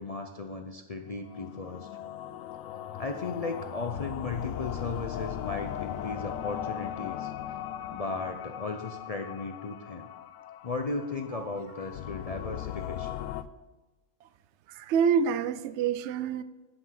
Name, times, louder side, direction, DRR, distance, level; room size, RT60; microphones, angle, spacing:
voice 1, 0.0-1.9 2.9-7.3 7.9-10.1 10.6-13.2, left 3 dB, 55° left, 5 dB, 0.4 m, -36 dB
sound 1, 1.2-13.4, left 11 dB, 75° left, 0.9 m, -38 dB
voice 2, 14.7-16.4, right 7 dB, 65° right, 14 dB, 0.8 m, -26 dB
10.0 x 5.8 x 5.9 m, 1.2 s
omnidirectional pair, 1.4 m